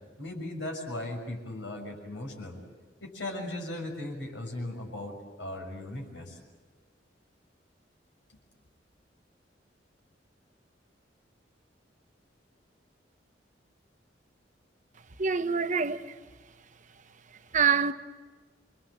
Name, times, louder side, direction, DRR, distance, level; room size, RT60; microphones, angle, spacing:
voice 1, 0.2-2.6 3.0-6.4 8.3-8.4, left 1 dB, 85° left, 6.6 m, -37 dB
voice 2, 15.2-16.0 17.5-17.9, right 6 dB, 45° right, 1.0 m, -25 dB
28.5 x 24.0 x 7.7 m
head